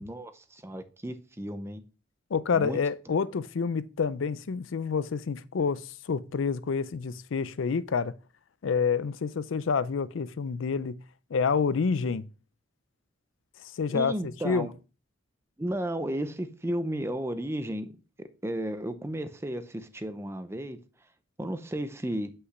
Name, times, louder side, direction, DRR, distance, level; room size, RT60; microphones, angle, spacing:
voice 1, 0.0-1.8 2.5-2.8 13.9-14.7 15.6-17.9 18.2-20.8 21.4-22.3, right 1 dB, 15° right, 0.6 m, -33 dB
voice 2, 2.3-8.1 8.6-11.0 11.3-12.3 13.6-14.1 14.4-14.7, left 5 dB, 75° left, 0.5 m, -28 dB
8.1 x 5.6 x 3.1 m
head